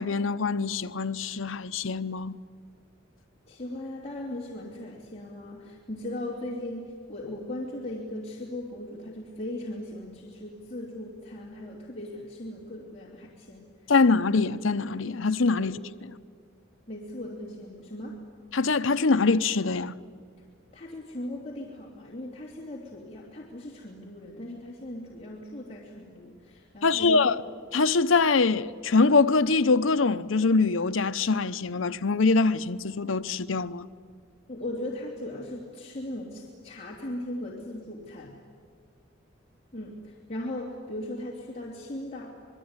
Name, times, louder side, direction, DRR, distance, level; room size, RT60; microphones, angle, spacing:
voice 1, 0.0-2.4 13.9-15.8 18.5-19.9 26.8-27.3 27.7-33.9, left 4 dB, 75° left, 0.8 m, -23 dB
voice 2, 3.5-13.9 15.6-15.7 16.9-18.2 20.7-27.4 34.5-38.3 39.7-42.4, left 1 dB, 35° left, 3.1 m, -38 dB
26.5 x 21.5 x 9.7 m
head